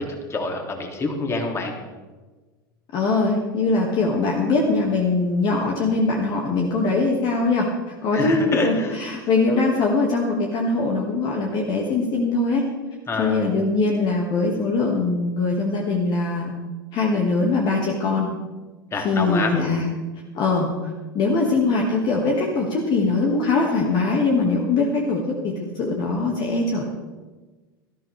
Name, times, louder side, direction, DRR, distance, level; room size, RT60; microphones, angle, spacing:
voice 1, 0.0-1.7 8.1-9.0 13.1-13.5 18.9-19.5, left 2 dB, 20° left, 2 dB, 2.8 m, -26 dB
voice 2, 2.9-12.6 13.2-16.5 16.9-18.3 19.0-19.9 20.3-20.7 21.1-26.9, left 3 dB, 40° left, 0 dB, 2.0 m, -22 dB
18.0 x 14.0 x 3.4 m, 1.3 s
figure-of-eight pair, 85°, 12 cm